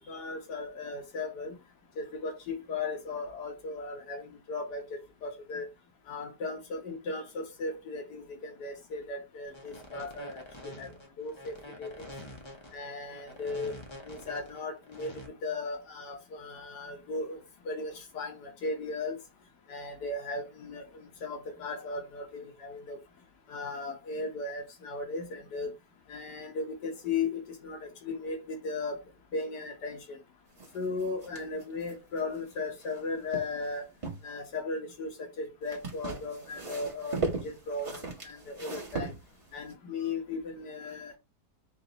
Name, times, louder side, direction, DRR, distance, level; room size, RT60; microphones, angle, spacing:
voice 1, 0.0-1.5 2.0-5.7 6.1-10.9 11.2-12.1 12.7-13.7 14.1-17.4 17.6-19.2 19.7-23.0 23.5-25.7 26.1-29.0 29.3-30.2 30.7-33.9 34.2-39.1 39.5-41.2, left 3 dB, 85° left, 1.6 m, -36 dB
sound 1, 9.5-15.3, left 1 dB, 35° left, 0.4 m, -46 dB
sound 2, 30.6-33.0 33.3-34.3 35.6-39.7, right 3 dB, 25° right, 0.8 m, -38 dB
3.9 x 2.5 x 3.8 m
omnidirectional pair, 1.7 m